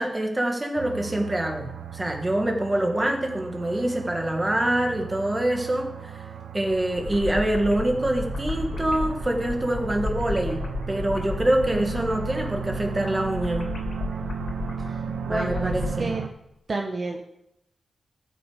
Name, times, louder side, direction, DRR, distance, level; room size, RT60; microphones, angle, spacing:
voice 1, 0.0-6.2 6.5-13.7 15.1-16.1, right 1 dB, 20° right, 3 dB, 2.0 m, -25 dB
sound 1, 0.8-16.3, right 7 dB, 85° right, 1.0 m, -35 dB
sound 2, 6.7-15.9, left 2 dB, 55° left, 2.9 m, -33 dB
voice 2, 14.8-15.7 16.0-16.2 16.7-17.3, right 2 dB, 45° right, 2 dB, 1.1 m, -30 dB
14.5 x 6.3 x 5.1 m, 0.82 s
wide cardioid pair, 110°, 0 cm